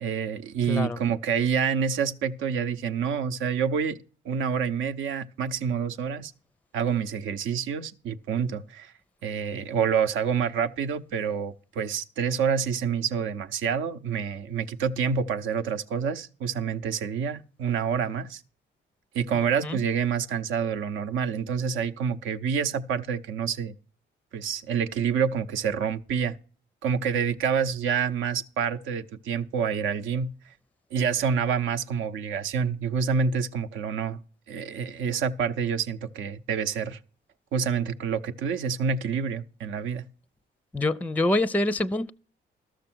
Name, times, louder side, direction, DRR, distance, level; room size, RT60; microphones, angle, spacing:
voice 1, 0.0-4.0 4.2-6.3 6.7-8.9 9.2-18.4 19.1-23.8 24.3-26.4 26.8-30.3 30.9-34.2 34.5-37.0 37.5-40.0, right 7 dB, 80° right, 0.8 m, -27 dB
voice 2, 0.7-1.0 19.3-19.8 40.7-42.1, left 2 dB, 10° left, 0.4 m, -26 dB
13.0 x 6.6 x 6.1 m
cardioid pair, 90°, 20 cm